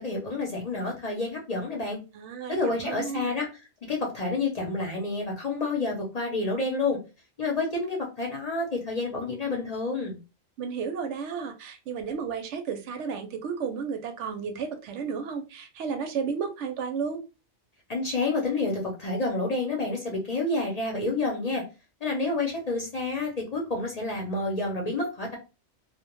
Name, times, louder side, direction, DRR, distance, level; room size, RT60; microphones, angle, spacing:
voice 1, 0.0-2.0 2.5-3.5 3.9-7.0 7.4-10.2 17.9-21.6 22.0-25.4, left 3 dB, 45° left, -1 dB, 0.6 m, -29 dB
voice 2, 2.1-3.3 10.6-17.2, right 6 dB, 85° right, 7 dB, 0.9 m, -33 dB
2.2 x 2.1 x 2.9 m, 0.30 s
omnidirectional pair, 1.2 m